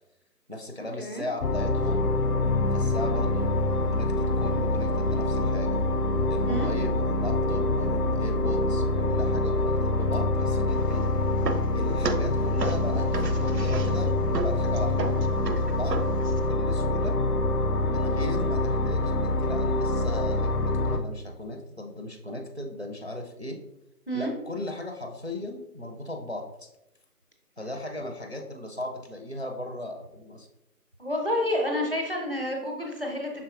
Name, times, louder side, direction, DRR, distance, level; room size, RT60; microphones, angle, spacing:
voice 1, 0.5-2.1 2.7-3.5 3.9-5.8 6.3-11.0 11.7-15.0 15.3-16.0 16.4-17.1 17.9-23.6 24.1-26.7 27.6-30.5, left 1 dB, 45° right, 2 dB, 0.4 m, -37 dB
sound 1, 1.4-21.0, left 2 dB, 75° left, 0.6 m, -25 dB
sound 2, 10.7-16.5, right 4 dB, 85° right, 0.6 m, -35 dB
voice 2, 31.0-33.4, left 1 dB, 35° left, 1 dB, 0.6 m, -29 dB
5.6 x 3.6 x 2.5 m, 0.91 s
figure-of-eight pair, 160°, 47 cm